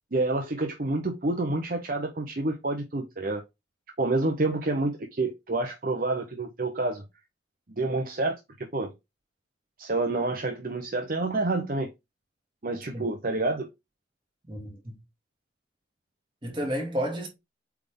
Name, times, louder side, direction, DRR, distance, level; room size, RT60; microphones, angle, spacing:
voice 1, 0.1-3.4 4.0-7.0 7.8-8.9 9.8-11.9 12.6-13.7, right 2 dB, 50° right, 0.8 m, -28 dB
voice 2, 14.5-15.0 16.4-17.3, equal, 25° right, 2.3 m, -31 dB
8.1 x 3.5 x 3.7 m
head